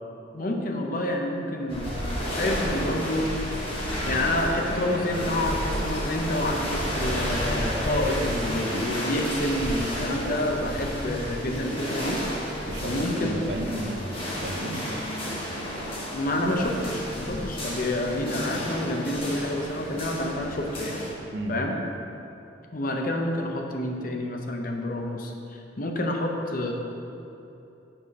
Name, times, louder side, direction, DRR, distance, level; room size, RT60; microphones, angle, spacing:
voice 1, 0.3-1.9 2.3-3.6 4.0-12.2 12.8-13.4 16.1-21.0 21.5-21.8 22.7-26.7, left 1 dB, 50° left, 2 dB, 0.7 m, -28 dB
sound 1, 1.7-21.1, equal, 30° left, 1.4 m, -31 dB
voice 2, 12.7-14.9 21.3-21.5, right 1 dB, 65° right, 2 dB, 0.7 m, -33 dB
6.0 x 4.9 x 5.4 m, 2.9 s
head